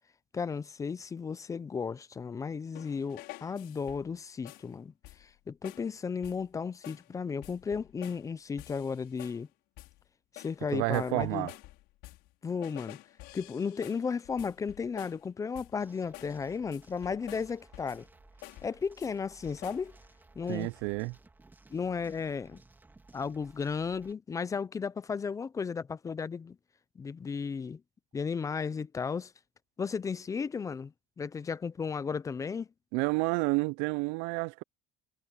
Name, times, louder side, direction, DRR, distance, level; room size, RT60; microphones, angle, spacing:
voice 1, 0.3-4.9 5.2-9.5 10.3-11.5 12.4-13.0 13.3-18.1 18.6-19.9 20.4-20.7 21.7-22.6 23.1-26.6 27.0-27.8 28.1-29.3 29.8-32.7, left 5 dB, 15° left, 0.5 m, -34 dB
sound 1, 2.7-4.2 4.4-4.7 5.0-5.4 5.6-5.9 6.2-6.5 6.8-7.1 7.4-8.3 8.6-9.5 9.8-10.0 10.4-12.3 12.6-15.3 15.5-15.8 16.1-16.4 16.7-18.1 18.4-19.1 19.4-19.9, left 19 dB, 65° left, 5.3 m, -50 dB
voice 2, 10.7-11.5 20.5-21.2 32.9-34.6, right 28 dB, 75° right, 0.4 m, -30 dB
sound 2, 15.8-24.1, right 2 dB, 10° right, 3.0 m, -58 dB
cardioid pair, 145°, 18 cm